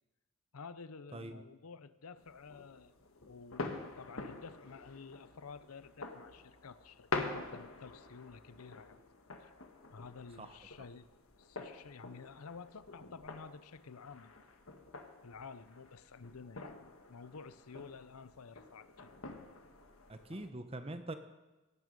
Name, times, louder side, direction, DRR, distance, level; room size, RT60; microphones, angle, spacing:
voice 1, 0.5-2.9 3.3-9.0 9.4-9.6 9.9-11.1 11.4-14.3 15.2-16.7 17.1-19.1, left 5 dB, 85° left, 14 dB, 0.7 m, -51 dB
sound 1, 2.2-20.5, left 3 dB, 65° left, 1.4 m, -47 dB
voice 2, 20.1-21.1, right 2 dB, 25° right, 9 dB, 0.9 m, -43 dB
17.0 x 9.5 x 5.3 m, 1.1 s
head